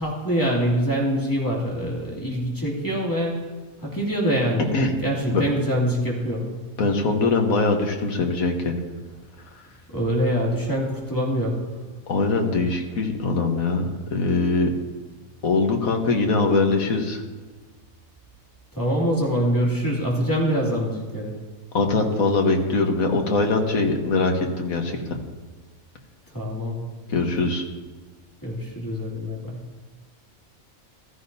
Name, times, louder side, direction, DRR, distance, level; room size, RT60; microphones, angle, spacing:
voice 1, 0.0-3.4 3.8-4.7 5.0-6.5 9.9-11.6 18.8-21.3 26.3-26.8 28.4-29.6, equal, 15° left, -4 dB, 2.5 m, -24 dB
voice 2, 6.8-8.7 12.1-13.8 14.1-14.7 15.4-17.2 21.7-25.0 27.1-27.6, left 3 dB, 85° left, 3 dB, 1.8 m, -22 dB
15.0 x 13.5 x 2.7 m, 1.4 s
omnidirectional pair, 1.4 m